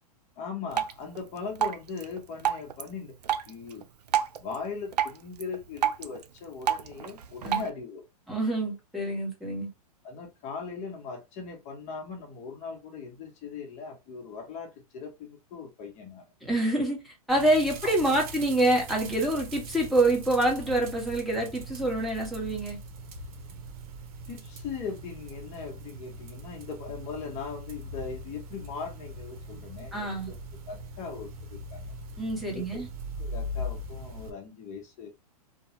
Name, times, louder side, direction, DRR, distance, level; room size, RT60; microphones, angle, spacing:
voice 1, 0.4-3.1 3.5-3.9 4.4-8.0 10.0-16.2 17.8-17.9 24.3-30.4 30.7-31.9 32.5-32.6 33.2-35.1, left 5 dB, 35° left, 0.9 m, -39 dB
Drip, 0.7-7.7, right 10 dB, 85° right, 0.4 m, -32 dB
voice 2, 8.3-9.7 16.4-22.8 29.9-30.3 32.2-32.9, right 1 dB, ahead, 1.1 m, -26 dB
sound 1, 17.3-34.3, equal, 60° right, 0.8 m, -41 dB
2.8 x 2.2 x 2.8 m
hypercardioid pair, 120°, 20 cm